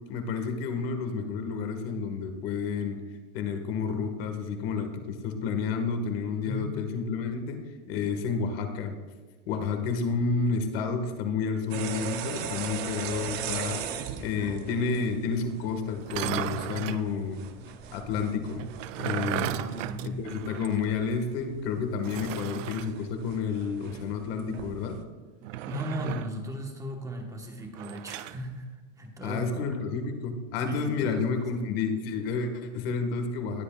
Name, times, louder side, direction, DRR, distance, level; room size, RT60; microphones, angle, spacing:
voice 1, 0.1-3.0 3.3-8.9 9.5-17.4 17.9-18.6 19.0-19.5 20.0-25.0 29.2-33.6, left 5 dB, 50° left, 6 dB, 1.6 m, -30 dB
sound 1, 11.7-25.0, right 8 dB, 30° right, 0.6 m, -40 dB
sound 2, 16.0-17.1 18.6-20.9 21.1-21.2 22.0-22.9 25.4-26.4 27.8-28.4, right 14 dB, 85° right, 0.5 m, -35 dB
voice 2, 19.5-20.2 25.7-29.7 30.6-31.6, equal, 10° right, 2 dB, 1.2 m, -37 dB
20.0 x 8.0 x 2.4 m, 1.4 s
supercardioid pair, 155°, 37 cm